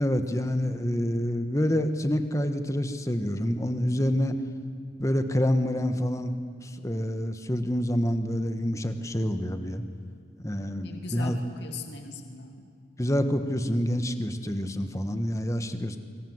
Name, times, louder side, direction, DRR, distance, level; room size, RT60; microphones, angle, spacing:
voice 1, 0.0-4.4 5.0-6.3 6.6-9.8 10.4-11.4 13.0-16.0, equal, 15° left, 8 dB, 1.4 m, -27 dB
voice 2, 10.8-12.7, left 4 dB, 60° left, 4 dB, 2.7 m, -40 dB
25.0 x 25.0 x 8.0 m, 2.4 s
head